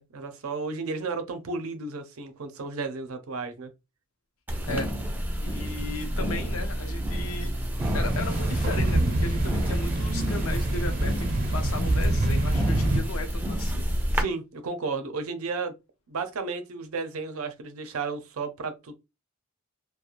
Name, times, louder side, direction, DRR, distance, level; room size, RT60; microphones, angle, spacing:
voice 1, 0.0-3.7 14.1-15.7 16.1-18.9, right 4 dB, 85° right, 0.5 m, -33 dB
sound 1, 4.5-14.2, equal, 10° right, 0.4 m, -30 dB
voice 2, 5.4-7.5 7.9-13.9, left 3 dB, 75° left, 0.6 m, -36 dB
sound 2, 7.8-13.0, right 1 dB, 45° right, 0.7 m, -26 dB
2.4 x 2.1 x 2.9 m
head